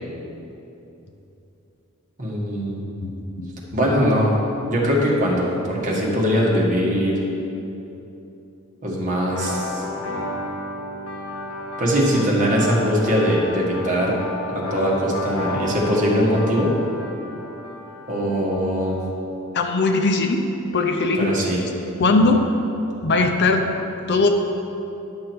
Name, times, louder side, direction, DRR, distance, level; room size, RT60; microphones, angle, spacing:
voice 1, 2.2-2.8 3.7-4.3 4.6-7.2 8.8-9.8 11.8-14.2 14.5-16.7 18.1-19.0 21.2-21.6, equal, 40° right, -4 dB, 1.6 m, -21 dB
sound 1, 9.3-18.9, left 1 dB, 70° left, 1.7 m, -32 dB
voice 2, 19.5-20.4 20.7-21.3 22.0-22.4 23.0-23.6 24.1-24.3, left 3 dB, 55° left, 5 dB, 0.6 m, -19 dB
10.5 x 6.2 x 4.6 m, 2.9 s
head